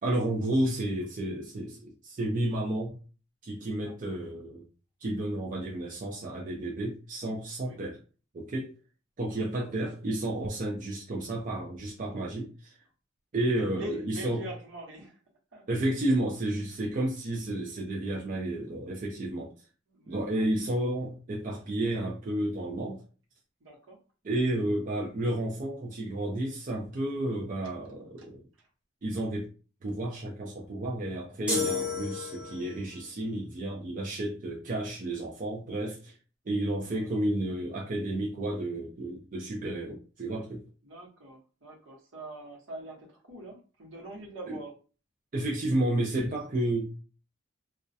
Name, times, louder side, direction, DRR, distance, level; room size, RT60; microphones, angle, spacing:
voice 1, 0.0-3.0 3.4-4.6 5.0-8.0 8.3-8.7 9.2-12.8 13.3-14.4 15.7-19.5 20.1-23.0 24.2-28.4 29.0-29.5 29.8-36.1 36.5-40.6 44.5-44.6 45.3-47.0, right 1 dB, 40° right, 0.4 m, -31 dB
voice 2, 9.3-9.7 13.5-15.2 15.5-15.6 19.9-20.4 23.6-24.0 28.2-28.3 37.0-37.1 40.8-44.7, right 1 dB, 75° right, 0.9 m, -44 dB
sound 1, 31.5-32.8, left 4 dB, 5° right, 0.8 m, -31 dB
2.2 x 2.1 x 2.6 m
head